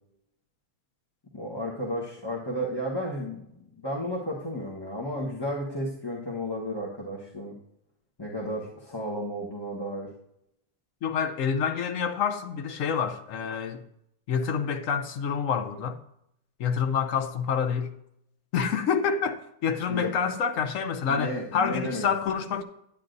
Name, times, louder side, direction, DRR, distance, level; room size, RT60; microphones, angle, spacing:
voice 1, 1.3-3.4 3.8-7.5 8.2-10.1 19.9-20.1 21.1-22.1, equal, 20° left, 1.0 m, -33 dB
voice 2, 11.0-13.8 14.3-16.0 16.6-17.9 18.5-22.6, left 6 dB, 65° left, 1.0 m, -27 dB
10.5 x 9.5 x 2.6 m
omnidirectional pair, 1.7 m